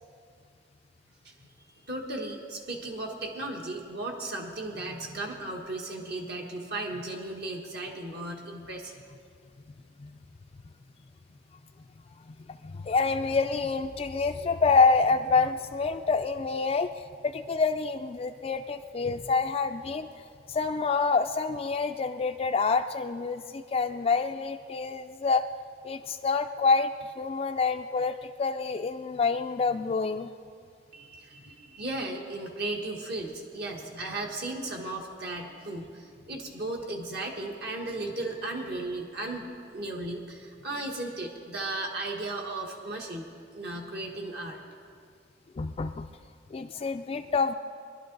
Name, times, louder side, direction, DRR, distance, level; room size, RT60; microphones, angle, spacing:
voice 1, 1.9-8.9 30.9-43.2 43.5-44.6, right 2 dB, 60° right, 0 dB, 1.5 m, -36 dB
voice 2, 12.6-16.9 17.2-20.1 20.5-25.4 25.8-26.9 27.2-30.3 45.6-46.1 46.5-47.5, left 4 dB, 35° left, 5 dB, 0.3 m, -27 dB
22.5 x 11.5 x 3.9 m, 2.2 s
head